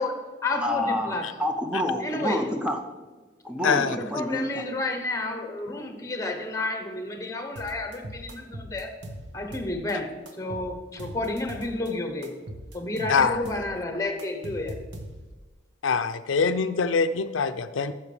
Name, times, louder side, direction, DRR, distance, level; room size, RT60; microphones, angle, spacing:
voice 1, 0.0-1.3 2.0-2.5 3.9-8.9 9.3-10.1 10.4-12.3 12.7-14.8, left 2 dB, 15° left, 5 dB, 0.9 m, -31 dB
voice 2, 0.6-2.8 3.4-4.6, left 1 dB, 5° right, 4 dB, 0.5 m, -28 dB
voice 3, 3.6-4.0 13.1-13.4 15.8-17.9, left 5 dB, 90° left, 11 dB, 0.5 m, -24 dB
sound 1, 7.6-9.9 10.3-11.9 12.2-15.4, right 1 dB, 65° right, 1.0 m, -40 dB
12.0 x 7.4 x 3.3 m, 1.3 s
head